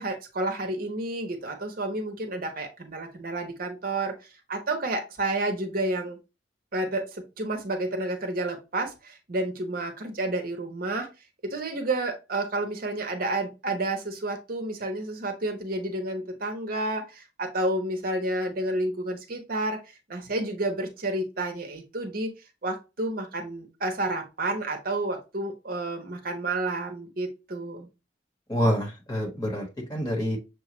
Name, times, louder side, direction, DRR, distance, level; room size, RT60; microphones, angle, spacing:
voice 1, 0.0-4.1 4.5-6.2 6.7-11.1 11.4-22.3 22.6-27.9, right 2 dB, 50° right, 4 dB, 0.7 m, -30 dB
voice 2, 28.5-30.4, equal, 20° left, -1 dB, 1.3 m, -27 dB
6.4 x 2.3 x 2.9 m, 0.27 s
head